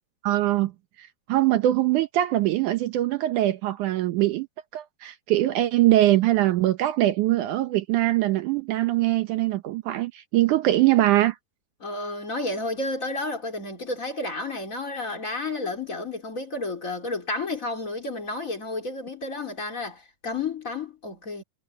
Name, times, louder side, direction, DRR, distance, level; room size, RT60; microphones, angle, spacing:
voice 1, 0.2-0.7 1.0-4.5 4.7-11.4, right 15 dB, 85° right, 1.7 m, -22 dB
voice 2, 11.8-21.4, left 2 dB, 20° left, 3.1 m, -31 dB
omnidirectional pair, 4.8 m